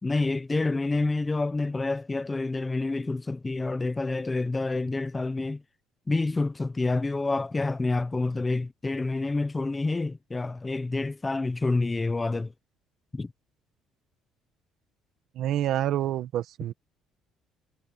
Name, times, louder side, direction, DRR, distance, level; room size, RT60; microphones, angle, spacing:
voice 1, 0.0-5.6 6.1-12.5 13.1-13.3, left 3 dB, 15° left, 1.1 m, -28 dB
voice 2, 15.3-16.7, right 12 dB, 60° right, 1.5 m, -27 dB
cardioid pair, 145°, 0 cm